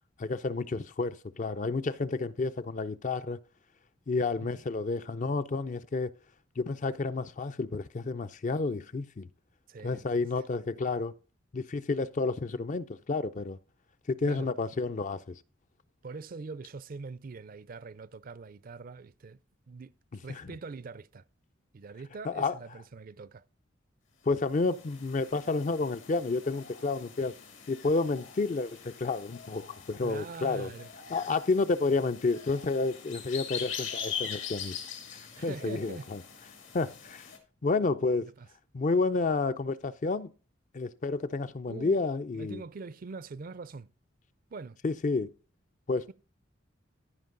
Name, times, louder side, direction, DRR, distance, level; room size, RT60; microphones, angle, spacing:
voice 1, 0.2-3.4 4.1-6.1 6.6-9.3 9.8-11.1 11.5-13.6 14.1-15.3 20.3-20.5 22.2-22.5 24.2-27.3 27.7-30.7 31.1-34.8 35.4-36.2 36.7-37.2 37.6-38.3 38.7-40.3 40.7-42.6 44.8-45.3 45.9-46.1, left 3 dB, 40° left, 0.4 m, -30 dB
voice 2, 9.7-10.0 14.3-14.5 16.0-19.4 19.7-19.9 20.2-21.2 21.7-23.4 30.0-30.9 35.3-36.1 38.4-38.5 41.7-42.0 42.3-43.9 44.5-44.8, right 4 dB, 45° right, 0.4 m, -43 dB
sound 1, 24.4-37.4, left 7 dB, 75° left, 2.2 m, -43 dB
14.5 x 5.2 x 3.8 m
head